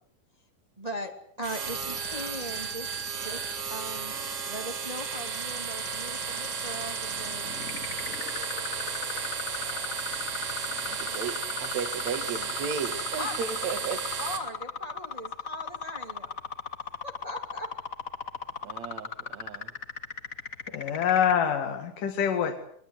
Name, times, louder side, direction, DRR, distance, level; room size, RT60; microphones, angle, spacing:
voice 1, 0.8-1.1 1.4-2.9 3.2-4.1 4.5-7.7 10.8-11.1 13.2-13.3 14.2-16.3 17.0-17.7, equal, 15° right, 2.3 m, -39 dB
sound 1, 1.4-14.4, right 6 dB, 90° right, 5.4 m, -34 dB
sound 2, 1.6-21.3, left 6 dB, 55° left, 0.9 m, -38 dB
voice 2, 11.0-14.0 18.6-19.7 21.3-21.4, right 6 dB, 60° right, 3.1 m, -35 dB
voice 3, 20.7-22.6, left 8 dB, 80° left, 3.6 m, -26 dB
22.5 x 21.5 x 8.2 m
omnidirectional pair, 3.8 m